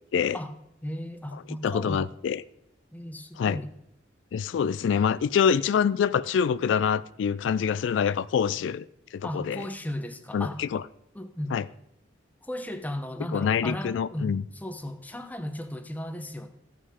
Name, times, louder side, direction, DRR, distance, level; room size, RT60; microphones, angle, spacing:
voice 1, 0.8-2.2 2.9-3.7 9.2-10.6 11.1-11.6 12.4-16.5, left 1 dB, 10° left, 0.7 m, -35 dB
voice 2, 1.6-2.4 3.4-3.6 4.3-8.9 9.1-9.7 10.3-10.8 11.5-11.6 13.3-14.4, left 7 dB, 85° left, 0.3 m, -25 dB
14.5 x 5.6 x 4.8 m
head